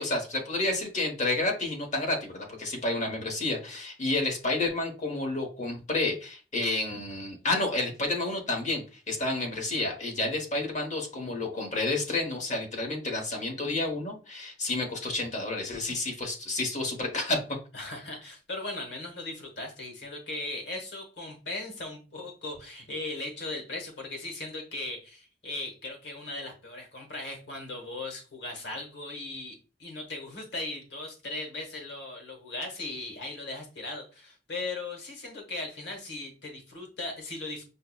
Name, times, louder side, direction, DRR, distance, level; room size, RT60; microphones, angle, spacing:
voice 1, 0.0-17.4, left 2 dB, 45° left, 1 dB, 1.0 m, -30 dB
voice 2, 17.7-37.6, left 2 dB, 75° left, 2 dB, 1.1 m, -38 dB
5.4 x 2.0 x 2.3 m, 0.33 s
head